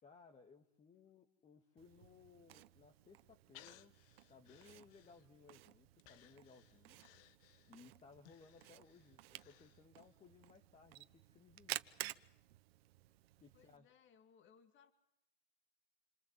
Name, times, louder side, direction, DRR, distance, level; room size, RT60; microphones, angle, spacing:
voice 1, 0.0-3.9 4.3-7.1 7.7-11.9 13.4-13.9, left 5 dB, 25° left, 4 dB, 2.0 m, -63 dB
Camera, 1.8-13.8, right 16 dB, 85° right, 1.1 m, -53 dB
Breathing, 3.5-5.5 6.0-10.2 10.6-10.7, left 14 dB, 70° left, 1.5 m, -64 dB
voice 2, 13.5-14.9, left 7 dB, 40° left, 7 dB, 2.6 m, -67 dB
28.0 x 27.5 x 7.6 m, 0.77 s
supercardioid pair, 120°, 29 cm